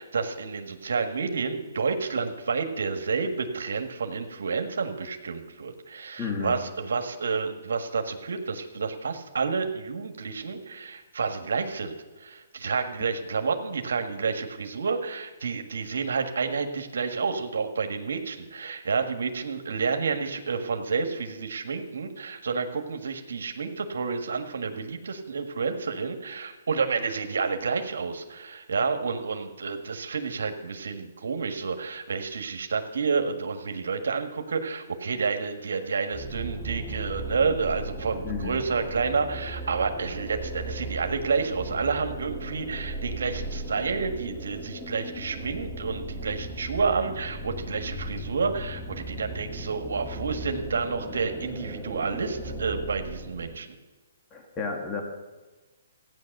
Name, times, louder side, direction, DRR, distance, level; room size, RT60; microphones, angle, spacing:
voice 1, 0.0-53.7, right 5 dB, 80° right, 6 dB, 1.5 m, -30 dB
voice 2, 6.2-6.6 38.2-38.6 54.3-55.0, left 5 dB, 15° left, 2 dB, 1.8 m, -32 dB
sound 1, 36.1-53.6, right 1 dB, ahead, 1.7 m, -37 dB
15.0 x 9.5 x 6.6 m, 1.2 s
hypercardioid pair, 155°, 0 cm